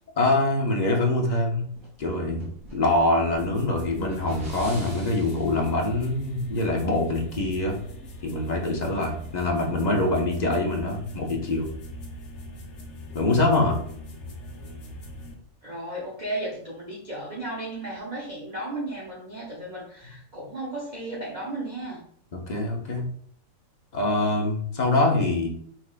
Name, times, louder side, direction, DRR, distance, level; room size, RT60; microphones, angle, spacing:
voice 1, 0.2-1.6 2.0-7.7 8.2-11.7 13.1-13.8 22.5-23.1 23.9-25.5, left 2 dB, 35° left, 0 dB, 0.7 m, -24 dB
sound 1, 1.7-5.6, right 1 dB, 55° right, 2.5 m, -44 dB
sound 2, 3.3-15.3, left 1 dB, 55° left, 1.1 m, -41 dB
voice 2, 15.6-22.0, right 1 dB, 35° right, -5 dB, 0.9 m, -34 dB
5.8 x 3.3 x 2.4 m, 0.62 s
omnidirectional pair, 1.7 m